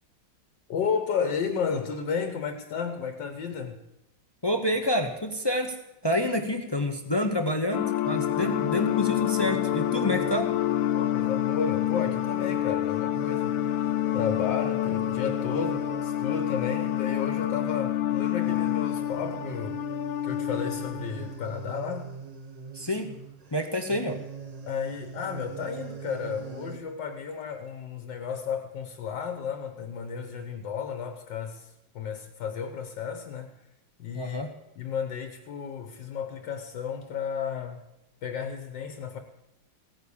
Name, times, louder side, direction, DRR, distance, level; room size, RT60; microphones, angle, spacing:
voice 1, 0.7-3.8 10.9-19.8 20.2-22.1 24.7-33.5 34.0-34.4 34.8-37.8 38.2-39.2, left 6 dB, 70° left, 7 dB, 1.6 m, -33 dB
voice 2, 4.4-5.8 6.0-10.5 22.7-23.1 23.5-24.2 34.1-34.5, left 1 dB, 30° left, 6 dB, 0.5 m, -28 dB
sound 1, 7.7-21.3, left 13 dB, 90° left, 1.4 m, -28 dB
sound 2, 8.0-26.8, right 6 dB, 40° right, 0.6 m, -41 dB
16.5 x 9.5 x 7.1 m, 0.90 s
omnidirectional pair, 2.0 m